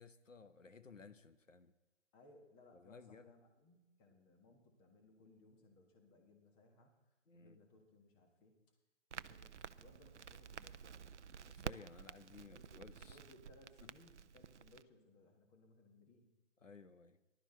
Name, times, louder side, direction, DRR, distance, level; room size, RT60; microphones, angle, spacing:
voice 1, 0.0-1.7 2.7-3.2 7.3-7.6 11.4-13.2 13.8-13.9 16.6-17.2, left 4 dB, 85° left, 10 dB, 1.2 m, -57 dB
voice 2, 2.1-6.9 7.3-8.5 9.1-10.9 12.4-16.3, left 2 dB, 15° left, 3 dB, 1.6 m, -65 dB
Crackle, 9.1-14.8, right 7 dB, 70° right, 0.6 m, -51 dB
19.5 x 12.0 x 4.5 m, 1.1 s
figure-of-eight pair, 145°, 37 cm